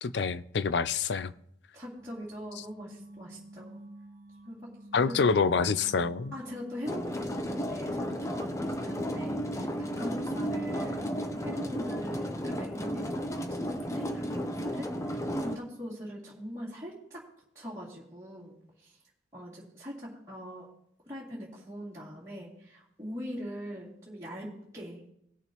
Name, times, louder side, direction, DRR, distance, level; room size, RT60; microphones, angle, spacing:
voice 1, 0.0-1.3 4.9-6.3, left 5 dB, 65° left, 15 dB, 0.4 m, -26 dB
voice 2, 1.7-3.8 4.4-4.7 5.0-5.3 6.3-17.2 17.5-19.0 19.3-20.7 21.1-25.0, equal, 15° right, -9 dB, 2.5 m, -42 dB
sound 1, 2.0-11.7, right 1 dB, 50° right, 1.8 m, -49 dB
sound 2, 6.9-15.6, equal, 15° left, 0.6 m, -33 dB
19.0 x 6.7 x 3.0 m, 0.75 s
head